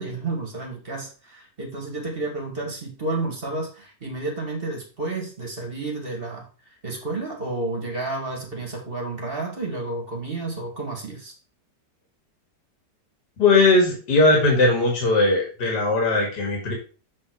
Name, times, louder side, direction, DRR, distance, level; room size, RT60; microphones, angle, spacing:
voice 1, 0.0-11.3, right 2 dB, 35° right, 1 dB, 2.0 m, -31 dB
voice 2, 13.4-16.7, left 2 dB, 70° left, -1 dB, 2.6 m, -19 dB
7.4 x 4.4 x 4.8 m, 0.35 s
omnidirectional pair, 1.9 m